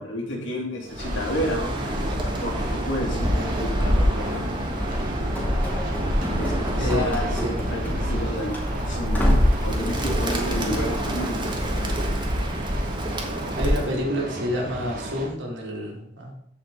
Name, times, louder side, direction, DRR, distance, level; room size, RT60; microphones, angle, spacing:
voice 1, 0.0-4.5 6.3-11.5, left 1 dB, 85° left, -1 dB, 2.7 m, -31 dB
Bird, 0.9-14.0, equal, 25° right, 1.4 m, -26 dB
sound 1, 1.0-15.3, right 1 dB, 50° right, 1.6 m, -33 dB
Run / Slam, 5.3-8.2 8.5-8.7 9.1-9.6, equal, 10° left, 2.2 m, -29 dB
voice 2, 6.7-7.5 13.6-16.3, equal, 75° right, -1 dB, 2.5 m, -29 dB
14.0 x 5.0 x 3.8 m, 0.77 s
head